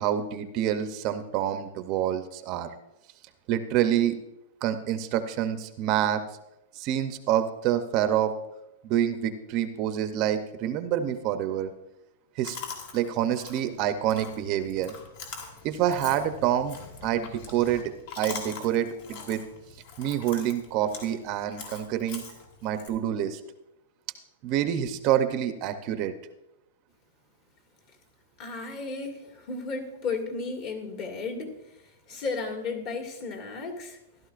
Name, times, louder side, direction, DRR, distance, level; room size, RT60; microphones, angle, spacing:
voice 1, 0.0-2.7 3.5-4.2 4.6-6.2 6.7-8.3 8.8-11.7 12.4-12.6 12.9-14.9 15.6-16.8 17.0-17.8 18.2-19.4 20.0-22.2 22.6-23.4 24.4-26.1, right 10 dB, 35° right, 9 dB, 0.6 m, -27 dB
Chewing mastication, 12.4-22.9, left 5 dB, 55° left, 2.7 m, -43 dB
voice 2, 28.4-34.0, left 4 dB, 40° left, 2 dB, 2.0 m, -34 dB
14.5 x 12.0 x 2.5 m, 0.90 s
supercardioid pair, 155°, 0 cm